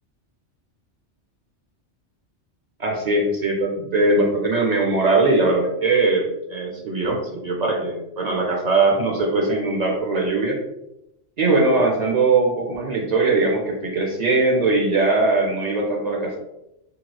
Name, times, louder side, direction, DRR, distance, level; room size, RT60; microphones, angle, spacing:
voice 1, 2.8-10.6 11.4-16.4, right 3 dB, 65° right, 0 dB, 0.4 m, -20 dB
2.9 x 2.9 x 2.2 m, 0.87 s
omnidirectional pair, 1.2 m